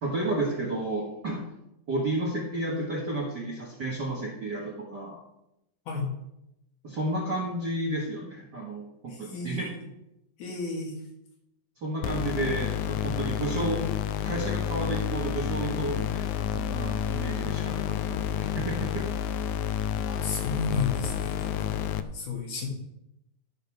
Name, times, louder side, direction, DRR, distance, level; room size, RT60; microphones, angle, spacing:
voice 1, 0.0-1.4 1.9-5.1 6.8-9.7 11.8-13.8 14.2-19.1, right 1 dB, 45° right, -3 dB, 1.4 m, -32 dB
voice 2, 9.1-9.8 10.4-10.9 20.0-21.8 22.1-22.7, left 4 dB, 65° left, 0 dB, 3.3 m, -33 dB
sound 1, 12.0-22.0, left 9 dB, 90° left, 1.7 m, -30 dB
11.0 x 5.3 x 6.2 m, 0.86 s
omnidirectional pair, 4.0 m